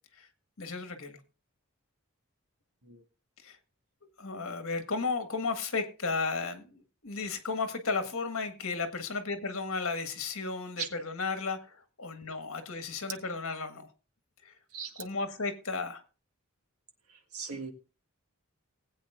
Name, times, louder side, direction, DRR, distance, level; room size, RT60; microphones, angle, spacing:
voice 1, 0.6-1.2 3.4-3.6 4.2-13.9 14.4-14.5 14.9-16.0, left 4 dB, 70° left, 1.7 m, -34 dB
voice 2, 14.7-15.0 17.3-17.7, right 6 dB, 90° right, 1.8 m, -37 dB
19.5 x 8.5 x 2.5 m
head